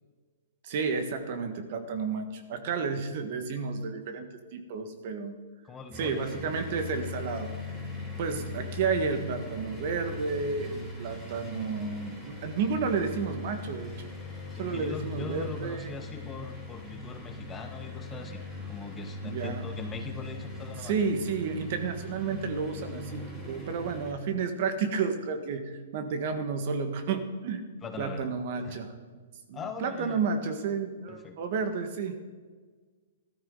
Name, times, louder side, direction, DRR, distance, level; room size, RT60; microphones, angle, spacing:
voice 1, 0.6-5.4 5.9-7.5 8.2-14.1 14.6-15.9 19.2-19.6 20.8-27.6 28.0-29.2 29.5-32.2, right 5 dB, 50° right, 7 dB, 1.5 m, -31 dB
voice 2, 5.6-6.3 14.6-21.0 27.8-28.8 29.5-30.2 31.1-31.4, left 5 dB, 15° left, 6 dB, 0.9 m, -42 dB
sound 1, 5.9-24.1, left 2 dB, 10° right, 3.0 m, -40 dB
14.0 x 12.5 x 3.9 m, 1.5 s
hypercardioid pair, 140°, 0 cm